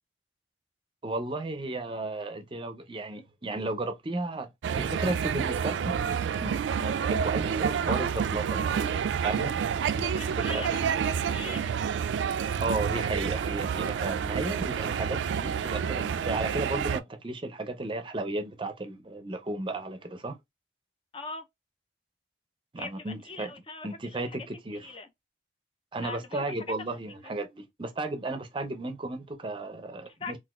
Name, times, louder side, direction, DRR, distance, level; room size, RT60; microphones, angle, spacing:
voice 1, 1.0-4.5 4.8-9.6 9.9-10.0 10.5-10.6 12.6-20.4 22.7-23.5 23.8-24.9 25.9-30.4, right 2 dB, 30° right, 0.5 m, -34 dB
sound 1, 4.6-17.0, right 7 dB, 85° right, 0.3 m, -29 dB
voice 2, 10.0-11.8 21.1-21.4 22.8-24.4 24.7-25.1 26.0-26.5 27.2-27.3 30.1-30.4, left 3 dB, 30° left, 0.5 m, -41 dB
3.9 x 2.5 x 2.3 m
head